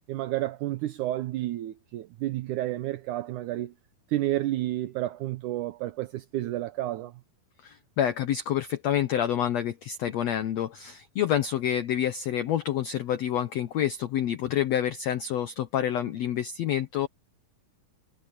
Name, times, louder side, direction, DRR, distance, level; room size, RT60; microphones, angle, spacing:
voice 1, 0.1-3.7 4.1-7.1, right 15 dB, 75° right, 1.9 m, -30 dB
voice 2, 7.6-17.1, left 10 dB, 85° left, 1.5 m, -28 dB
omnidirectional pair, 4.3 m